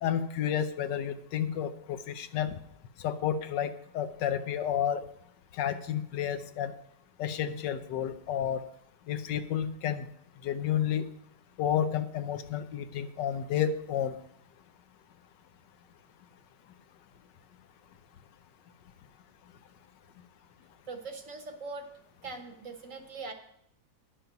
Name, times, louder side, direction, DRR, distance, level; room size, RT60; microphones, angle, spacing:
voice 1, 0.0-2.6 3.0-5.0 5.5-6.7 7.2-8.6 9.1-10.1 10.4-11.1 11.6-14.2, left 9 dB, 80° left, 10 dB, 1.4 m, -31 dB
voice 2, 20.9-21.9 22.2-23.3, right 3 dB, 50° right, 6 dB, 1.3 m, -41 dB
10.5 x 6.9 x 5.8 m, 0.71 s
omnidirectional pair, 1.9 m